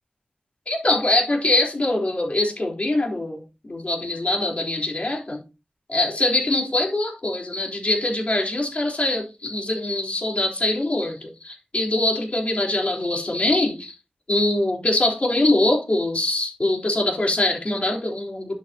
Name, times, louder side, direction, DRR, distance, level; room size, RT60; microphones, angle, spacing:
voice 1, 0.7-5.4 5.9-13.9 14.3-18.5, left 2 dB, 50° left, 3.6 m, -23 dB
11.0 x 9.0 x 2.8 m
wide cardioid pair, 75°, 3 cm